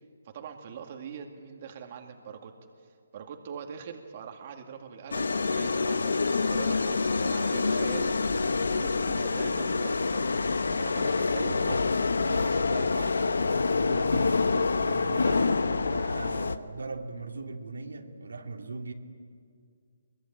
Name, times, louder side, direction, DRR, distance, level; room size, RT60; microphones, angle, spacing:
voice 1, 0.2-2.5 2.8-11.9 12.2-13.3, right 7 dB, 35° right, 3 dB, 2.2 m, -43 dB
sound 1, 5.1-16.6, left 4 dB, 90° left, 1.2 m, -26 dB
voice 2, 13.7-14.4 14.8-15.5 15.9-18.9, right 3 dB, 90° right, 2 dB, 2.8 m, -39 dB
23.5 x 23.0 x 8.9 m, 2.2 s
hypercardioid pair, 160°, 0 cm